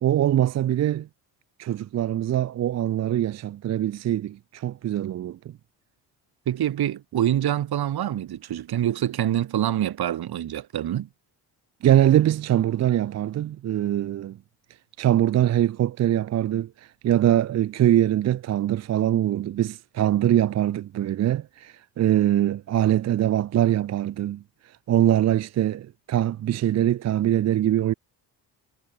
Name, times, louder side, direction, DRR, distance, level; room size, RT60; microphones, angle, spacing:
voice 1, 0.0-1.1 1.6-5.4 11.8-14.4 15.0-27.9, right 12 dB, 40° right, 0.5 m, -23 dB
voice 2, 6.5-11.1, right 11 dB, 60° right, 2.3 m, -26 dB
cardioid pair, 85°, 42 cm